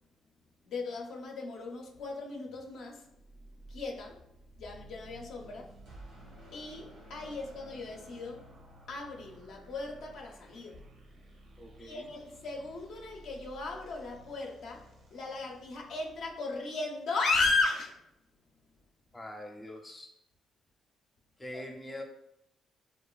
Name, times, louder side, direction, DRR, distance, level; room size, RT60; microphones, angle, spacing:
voice 1, 0.6-4.3 4.6-10.8 11.8-18.1 21.5-21.6, left 3 dB, 75° left, 0.5 m, -36 dB
sound 1, 3.1-16.3, right 1 dB, 60° right, 0.6 m, -55 dB
sound 2, 5.3-9.7, right 1 dB, 90° right, 1.1 m, -55 dB
voice 2, 11.6-12.1 19.1-20.1 21.4-22.0, left 1 dB, 15° left, 0.5 m, -44 dB
3.0 x 2.4 x 2.3 m
cardioid pair, 90°, 0 cm